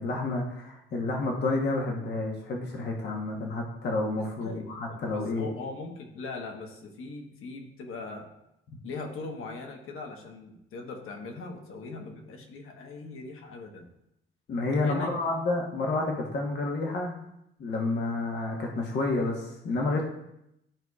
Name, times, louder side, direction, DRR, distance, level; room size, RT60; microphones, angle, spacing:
voice 1, 0.0-5.5 14.5-17.2 17.6-20.0, left 2 dB, 55° left, 0 dB, 1.1 m, -30 dB
voice 2, 4.2-4.6 4.9-8.3 8.8-13.9 14.8-15.1, left 3 dB, 80° left, 3 dB, 1.2 m, -40 dB
12.0 x 4.7 x 2.4 m, 0.82 s
cardioid pair, 140°, 21 cm